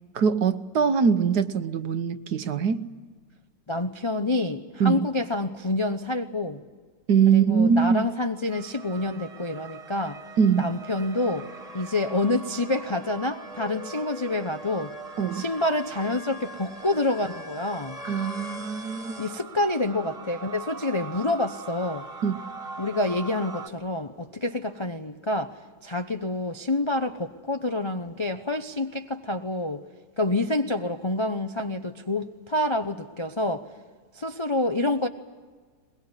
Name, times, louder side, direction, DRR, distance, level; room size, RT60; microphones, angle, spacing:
voice 1, 0.1-2.8 4.8-5.1 7.1-8.1 10.4-10.7 15.2-15.4 18.0-19.2 22.2-22.3, right 6 dB, 60° right, 1.5 m, -22 dB
voice 2, 3.7-6.6 7.3-10.2 10.6-11.5 11.7-14.9 15.3-18.0 19.2-22.0 22.8-25.5 25.8-29.8 30.2-33.7 34.1-35.1, left 2 dB, 40° left, 0.4 m, -27 dB
sound 1, 8.5-23.7, right 2 dB, 20° right, 1.9 m, -41 dB
22.0 x 21.5 x 9.7 m
omnidirectional pair, 2.0 m